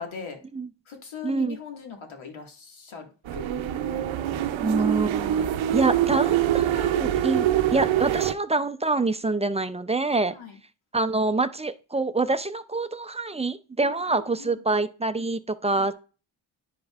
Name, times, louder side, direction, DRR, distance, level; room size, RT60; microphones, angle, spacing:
voice 1, 0.0-0.4 0.9-3.5 10.3-10.6 13.8-14.6 15.7-15.9, left 6 dB, 70° left, 3 dB, 1.9 m, -40 dB
voice 2, 1.2-1.6 4.6-7.5 7.7-10.4 10.9-15.9, right 3 dB, 15° right, 11 dB, 0.4 m, -26 dB
sound 1, 3.3-8.3, right 12 dB, 70° right, 0.7 m, -24 dB
10.5 x 5.2 x 2.4 m, 0.35 s
cardioid pair, 70°, 48 cm